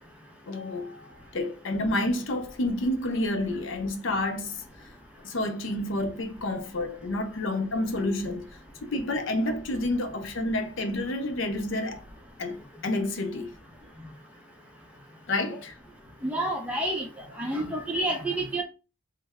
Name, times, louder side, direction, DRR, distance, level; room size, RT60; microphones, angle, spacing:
voice 1, 0.5-1.1 1.3-4.6 5.2-8.5 8.8-12.0 12.4-13.5 15.3-15.8, left 1 dB, 60° left, 0.5 m, -29 dB
voice 2, 16.2-17.1 17.4-18.6, right 1 dB, 5° right, 0.7 m, -28 dB
3.2 x 2.1 x 3.5 m
head